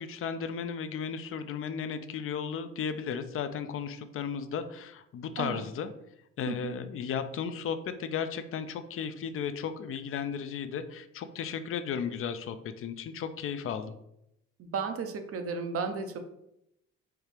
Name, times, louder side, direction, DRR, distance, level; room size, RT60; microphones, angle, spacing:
voice 1, 0.0-5.9 6.4-13.9, left 7 dB, 45° left, 11 dB, 0.4 m, -35 dB
voice 2, 14.6-16.2, right 5 dB, 50° right, 7 dB, 0.6 m, -34 dB
4.5 x 2.4 x 3.2 m, 0.80 s
cardioid pair, 90°, 30 cm